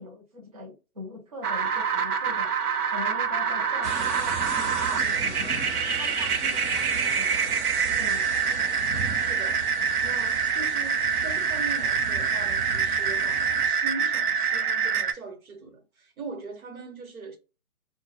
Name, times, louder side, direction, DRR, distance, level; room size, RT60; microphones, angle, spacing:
voice 1, 0.0-2.5 2.9-5.5 5.9-7.6 7.9-8.3, left 2 dB, 25° right, 0.5 m, -42 dB
sound 1, 1.4-15.1, right 6 dB, 90° right, 0.6 m, -26 dB
sound 2, 3.1-9.7, left 6 dB, 50° left, 0.5 m, -46 dB
sound 3, 3.8-13.7, right 4 dB, 50° right, 0.8 m, -37 dB
voice 2, 9.2-9.6 10.0-17.4, right 3 dB, 70° right, 1.1 m, -40 dB
2.1 x 2.0 x 3.3 m
figure-of-eight pair, 145°, 44 cm